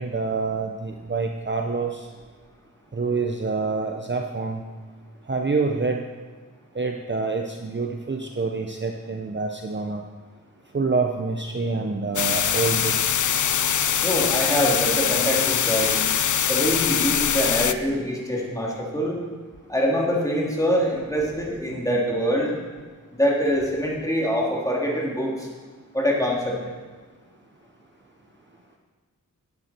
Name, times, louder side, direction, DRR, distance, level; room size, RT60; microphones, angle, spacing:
voice 1, 0.0-2.1 2.9-4.6 5.3-6.0 6.7-10.0 10.7-13.2, right 4 dB, 35° right, 2 dB, 0.8 m, -27 dB
sound 1, 12.2-17.7, left 8 dB, 60° left, 0.5 m, -23 dB
voice 2, 14.0-16.0 16.5-19.2 19.7-22.5 23.1-25.5 25.9-26.6, equal, 10° left, -4 dB, 3.2 m, -24 dB
12.0 x 9.7 x 4.5 m, 1.4 s
wide cardioid pair, 50°, 34 cm